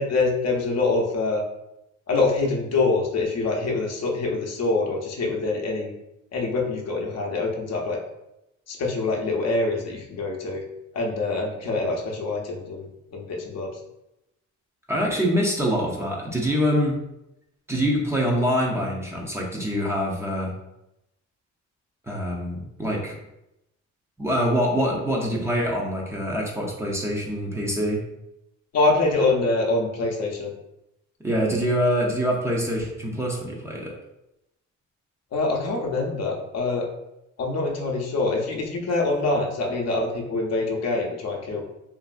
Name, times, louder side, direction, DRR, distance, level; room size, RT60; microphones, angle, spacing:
voice 1, 0.0-1.4 2.1-5.9 6.3-8.0 8.7-10.6 10.9-13.7 28.7-30.5 35.3-36.9 37.4-41.6, left 3 dB, 60° left, 0 dB, 0.7 m, -25 dB
voice 2, 14.9-17.0 17.7-20.5 22.0-23.1 24.2-28.0 31.2-33.9, equal, 10° right, -3 dB, 0.6 m, -25 dB
2.9 x 2.5 x 2.4 m, 0.88 s
cardioid pair, 90°, 30 cm